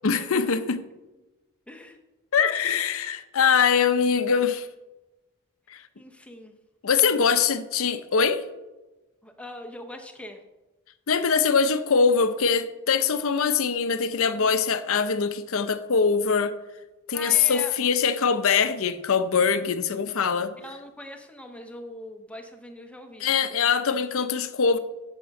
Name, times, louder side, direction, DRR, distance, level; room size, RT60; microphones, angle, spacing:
voice 1, 0.0-0.8 2.3-4.7 6.8-8.4 11.1-16.5 17.1-20.5 23.2-24.8, left 6 dB, 65° left, 0.6 m, -23 dB
voice 2, 1.7-2.0 6.0-6.5 7.1-7.4 9.2-10.4 17.1-17.9 20.6-23.4, left 1 dB, 5° left, 0.9 m, -41 dB
7.7 x 6.7 x 5.4 m
head